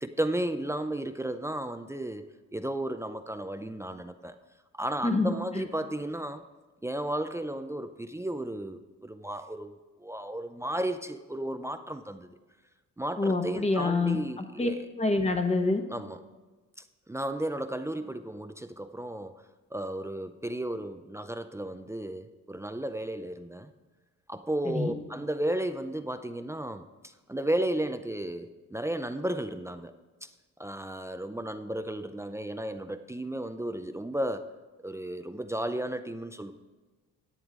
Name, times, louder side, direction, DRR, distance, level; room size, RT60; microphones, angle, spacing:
voice 1, 0.0-4.3 4.7-6.4 6.8-9.7 10.0-12.3 13.0-14.9 15.9-16.2 17.1-19.4 19.7-23.7 24.3-26.9 27.3-29.9 30.2-30.3 30.6-34.5 34.8-36.5, right 1 dB, 10° right, 9 dB, 0.5 m, -34 dB
voice 2, 5.0-5.3 13.2-14.7 15.0-15.8 24.6-24.9, left 3 dB, 20° left, 6 dB, 1.3 m, -26 dB
11.0 x 8.9 x 3.7 m, 1.3 s
cardioid pair, 90°, 30 cm